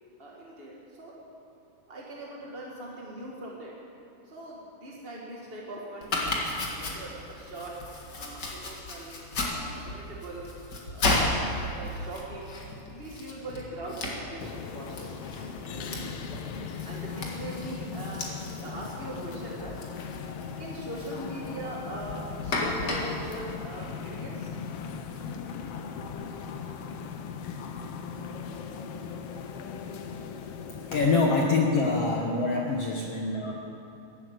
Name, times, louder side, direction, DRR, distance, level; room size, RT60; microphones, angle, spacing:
voice 1, 0.2-1.2 1.9-3.7 4.3-6.3 6.7-7.8 8.1-9.1 9.5-10.5 10.9-11.2 11.6-12.5 12.9-15.2 15.9-16.2 16.8-18.3 18.6-19.7 20.6-24.6 33.4-33.5, right 1 dB, 30° right, -3 dB, 1.0 m, -41 dB
Domestic sounds home sounds, 6.0-24.5, left 2 dB, 40° left, 1.9 m, -35 dB
sound 1, 14.4-31.3, left 6 dB, 90° left, 1.3 m, -38 dB
voice 2, 30.9-33.5, left 3 dB, 60° left, 0 dB, 1.8 m, -25 dB
15.0 x 11.5 x 7.9 m, 2.8 s
omnidirectional pair, 3.9 m